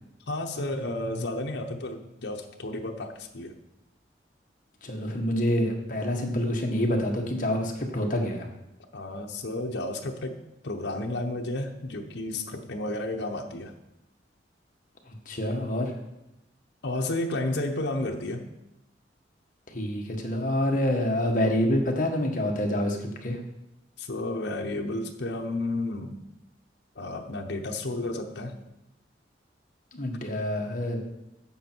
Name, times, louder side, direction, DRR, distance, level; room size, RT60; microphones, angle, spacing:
voice 1, 0.3-3.6 8.9-10.4 10.6-13.7 16.8-18.5 24.0-26.2 27.0-28.6, left 2 dB, 70° left, 2 dB, 0.9 m, -32 dB
voice 2, 4.8-8.5 15.3-15.9 19.7-23.0 23.2-23.4 29.9-31.0, left 1 dB, 45° left, 2 dB, 1.4 m, -27 dB
11.5 x 7.7 x 4.6 m, 0.90 s
head